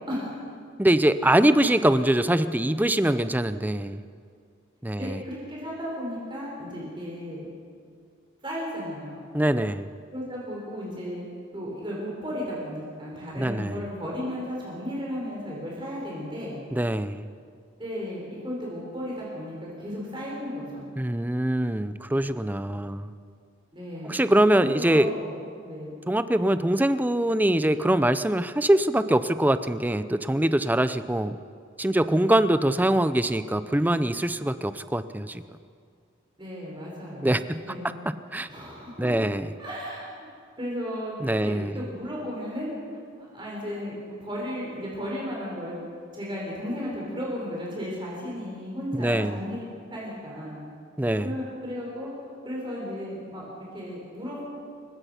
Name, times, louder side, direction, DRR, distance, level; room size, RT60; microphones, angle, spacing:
voice 1, 0.1-0.4 5.0-7.5 8.4-9.3 10.1-11.2 11.5-16.6 17.8-20.9 23.7-24.2 24.5-25.3 25.6-25.9 32.1-32.6 36.4-37.3 37.7-38.0 38.5-39.1 39.6-40.1 40.6-41.2 41.4-42.7 43.2-45.7 46.1-50.6 51.2-52.1 52.4-53.5 53.7-54.4, equal, 25° right, -4 dB, 4.9 m, -34 dB
voice 2, 0.8-4.0 4.8-5.2 9.3-9.9 13.4-13.9 16.7-17.3 21.0-23.1 24.0-25.1 26.1-31.4 31.8-35.4 37.2-38.5 39.0-39.5 41.2-41.7 49.0-49.4 51.0-51.3, right 1 dB, 10° right, 12 dB, 0.5 m, -23 dB
28.0 x 16.5 x 5.8 m, 2.2 s
head